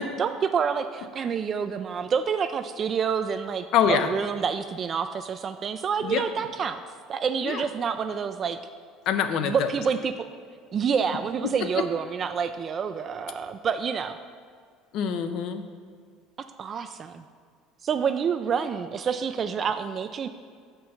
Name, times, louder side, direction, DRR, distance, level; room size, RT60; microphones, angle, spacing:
voice 1, 0.2-6.8 7.1-8.6 9.4-10.3 10.7-14.2 16.6-17.3 17.8-20.3, right 6 dB, 40° right, 9 dB, 0.3 m, -28 dB
voice 2, 3.7-4.1 6.0-6.2 7.4-7.6 9.1-9.7 11.4-11.9 14.9-15.6, left 8 dB, 65° left, 9 dB, 0.6 m, -25 dB
6.3 x 4.5 x 5.6 m, 2.1 s
supercardioid pair, 90°, 0 cm